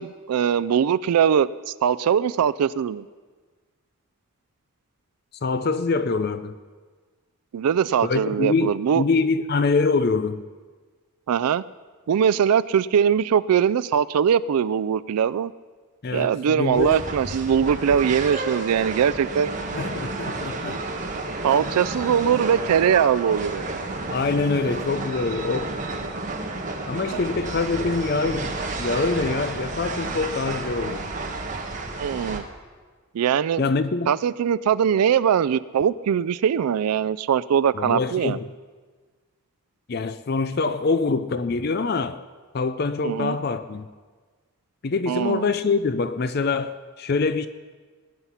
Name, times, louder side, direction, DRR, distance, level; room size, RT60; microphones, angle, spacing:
voice 1, 0.0-3.0 7.5-9.0 11.3-11.6 12.1-15.5 16.1-20.0 21.4-23.7 32.0-32.4 33.1-33.6 34.1-38.4 43.0-43.4 45.1-45.5, right 8 dB, 90° right, 14 dB, 0.4 m, -21 dB
voice 2, 5.4-6.5 8.0-10.5 16.0-17.0 19.7-20.8 24.1-25.7 26.9-31.1 33.6-34.1 37.7-38.5 39.9-42.2 42.5-43.9 44.8-47.5, left 4 dB, 45° left, 12 dB, 0.5 m, -25 dB
sound 1, 16.7-32.4, right 2 dB, 35° right, 1.5 m, -31 dB
20.5 x 9.7 x 5.7 m, 1.4 s
head